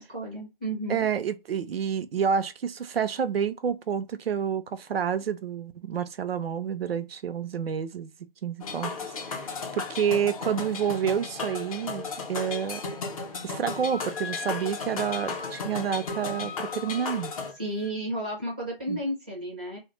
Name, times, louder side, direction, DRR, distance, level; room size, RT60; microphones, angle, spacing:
voice 1, 0.0-1.1 17.5-19.8, right 1 dB, 10° right, 0.4 m, -32 dB
voice 2, 0.9-8.1 8.4-9.5 9.7-12.0 12.3-12.8 13.4-17.3 18.9-19.0, right 8 dB, 85° right, 0.5 m, -29 dB
sound 1, 8.6-17.5, left 4 dB, 40° left, 0.5 m, -35 dB
Wind instrument woodwind instrument, 13.7-18.0, left 6 dB, 80° left, 0.6 m, -42 dB
2.1 x 2.0 x 2.8 m
figure-of-eight pair, 145°, 29 cm